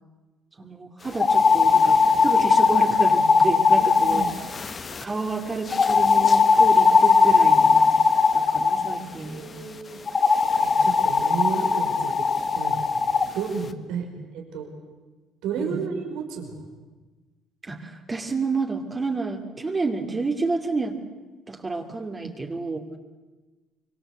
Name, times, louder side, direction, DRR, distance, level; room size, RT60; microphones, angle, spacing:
voice 1, 0.6-4.3 5.0-7.9 8.3-9.4 15.6-15.8 17.6-21.0 21.5-22.9, right 3 dB, 25° right, 2 dB, 2.6 m, -30 dB
sound 1, 1.1-5.0 5.7-9.0 10.1-13.3, left 5 dB, 30° left, 1.6 m, -19 dB
voice 2, 3.8-4.3 9.2-10.0 10.6-12.2 12.5-13.0 13.3-14.1 14.3-14.7 15.4-16.7 22.2-22.6, right 6 dB, 80° right, 3 dB, 4.9 m, -32 dB
25.0 x 23.0 x 8.0 m, 1.2 s
cardioid pair, 100°, 0 cm